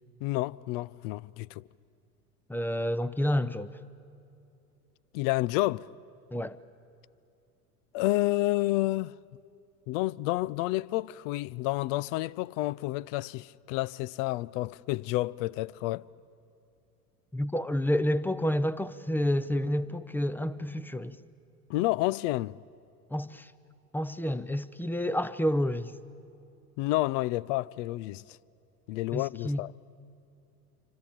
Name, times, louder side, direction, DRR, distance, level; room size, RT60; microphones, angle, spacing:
voice 1, 0.2-1.6 5.1-5.9 7.9-9.1 9.9-16.0 21.7-22.5 26.8-28.2 28.9-29.7, left 18 dB, 55° left, 0.6 m, -29 dB
voice 2, 2.5-3.8 6.3-6.6 17.3-21.2 23.1-23.5 23.9-25.9 29.1-29.6, equal, 5° left, 0.6 m, -29 dB
26.5 x 25.5 x 8.9 m
hypercardioid pair, 85°, 46 cm